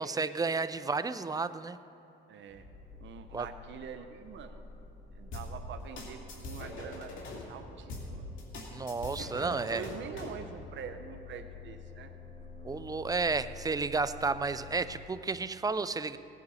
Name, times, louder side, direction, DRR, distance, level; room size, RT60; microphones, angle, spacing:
voice 1, 0.0-1.8 3.3-3.5 8.7-9.9 12.6-16.2, right 4 dB, 20° right, 13 dB, 0.5 m, -32 dB
voice 2, 2.3-2.6 3.0-4.7 5.1-7.2 7.5-8.3 9.1-12.1, right 7 dB, 70° right, 8 dB, 0.7 m, -45 dB
sound 1, 2.5-15.0, left 4 dB, 35° left, 3.1 m, -49 dB
sound 2, 5.3-7.4 7.9-10.4, left 2 dB, 80° left, 2.5 m, -42 dB
18.5 x 9.7 x 4.1 m, 3.0 s
cardioid pair, 90°, 20 cm